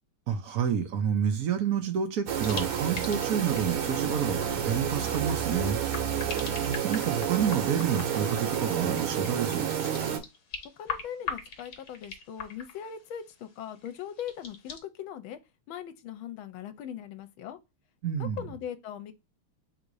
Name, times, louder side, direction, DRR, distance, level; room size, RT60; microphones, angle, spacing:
voice 1, 0.3-5.8 6.2-9.7 18.0-18.4, right 7 dB, 55° right, 1.2 m, -29 dB
sound 1, 2.3-10.2, right 8 dB, 85° right, 1.9 m, -30 dB
sound 2, 2.4-14.8, left 6 dB, 55° left, 1.4 m, -42 dB
voice 2, 10.8-15.4 15.7-17.6 18.2-19.1, left 9 dB, 75° left, 1.5 m, -40 dB
4.0 x 2.8 x 4.7 m
omnidirectional pair, 2.3 m